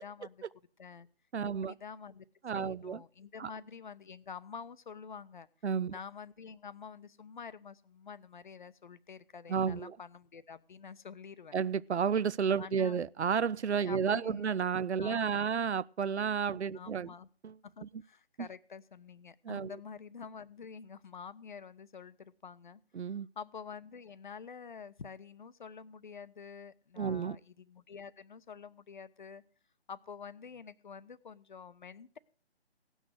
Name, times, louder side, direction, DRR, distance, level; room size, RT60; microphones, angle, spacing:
voice 1, 0.0-0.4 0.8-1.1 1.4-2.3 2.5-5.5 5.9-11.6 12.6-13.0 13.8-14.5 15.0-15.5 16.5-17.3 17.6-22.8 23.1-29.4 29.9-32.2, left 6 dB, 45° left, 0.6 m, -48 dB
voice 2, 1.3-1.7 2.4-3.0 3.4-3.5 5.6-6.0 9.5-10.0 11.5-17.1 17.4-17.5 17.8-17.9 18.4-18.5 19.4-19.7 22.9-23.3 27.0-27.4, right 6 dB, 90° right, 0.5 m, -31 dB
17.0 x 6.3 x 6.4 m
figure-of-eight pair, 145°, 32 cm